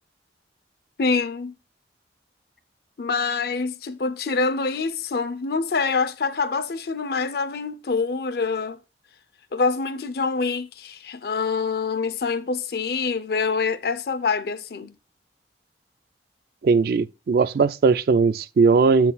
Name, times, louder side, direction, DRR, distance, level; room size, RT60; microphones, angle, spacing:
voice 1, 1.0-1.5 3.0-8.8 9.5-15.0, left 4 dB, 55° left, 0.5 m, -25 dB
voice 2, 16.6-19.1, right 4 dB, 55° right, 0.3 m, -19 dB
7.7 x 4.0 x 4.0 m
head